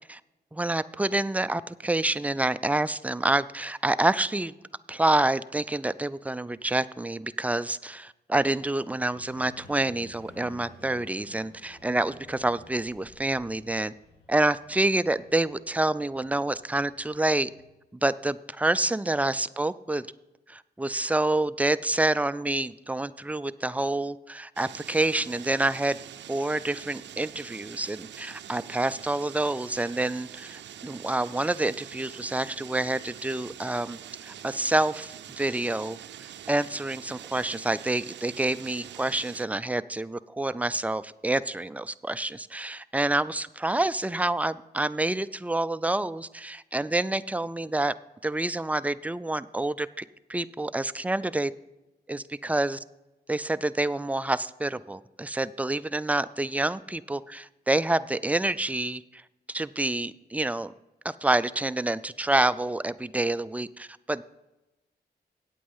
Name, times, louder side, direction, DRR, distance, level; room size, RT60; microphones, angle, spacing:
voice 1, 0.5-4.5 4.9-13.9 14.3-17.5 18.0-20.1 20.5-26.0 26.3-36.0 36.5-47.9 48.2-50.0 50.3-51.5 52.1-52.8 53.3-59.2 59.5-60.7 61.0-64.2, right 2 dB, 10° right, 13 dB, 0.4 m, -27 dB
sound 1, 9.1-17.7, left 1 dB, 90° left, 4.6 m, -54 dB
sound 2, 24.6-39.5, right 10 dB, 90° right, 0.4 m, -44 dB
9.0 x 8.4 x 5.5 m, 0.98 s
cardioid pair, 70°, 18 cm